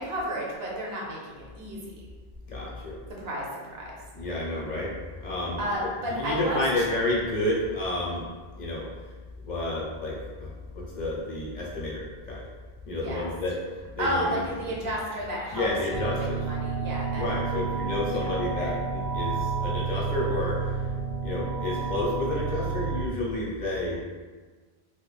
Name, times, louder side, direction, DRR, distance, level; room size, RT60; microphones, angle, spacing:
voice 1, 0.0-1.9 3.1-3.9 5.6-6.9 12.9-13.3 14.0-17.2 18.1-18.2, equal, 75° right, -3 dB, 1.0 m, -32 dB
voice 2, 2.5-2.9 4.1-4.9 5.2-5.6 6.0-8.2 8.6-8.9 9.5-12.4 12.8-13.6 13.9-14.9 15.5-16.4 17.1-20.9 21.2-24.0, left 2 dB, 50° left, -5 dB, 0.7 m, -30 dB
sound 1, 15.9-23.1, right 5 dB, 60° right, 0.6 m, -30 dB
3.1 x 2.4 x 3.3 m, 1.4 s
omnidirectional pair, 1.0 m